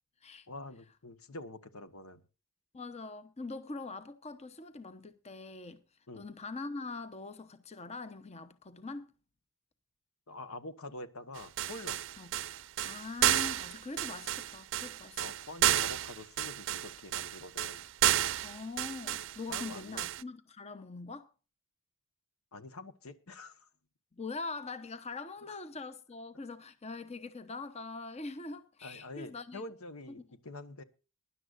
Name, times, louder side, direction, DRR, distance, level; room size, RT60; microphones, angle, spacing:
voice 1, 0.5-2.2 6.1-6.3 10.3-12.0 15.2-17.8 19.5-20.0 22.5-23.7 25.5-25.6 28.8-30.8, left 2 dB, 75° left, 1.2 m, -46 dB
voice 2, 2.7-5.8 6.2-9.1 12.2-12.3 12.8-15.2 18.4-21.3 24.2-29.6, left 3 dB, 30° left, 0.8 m, -43 dB
sound 1, 11.4-20.2, right 12 dB, 60° right, 0.5 m, -32 dB
22.5 x 11.0 x 2.5 m
head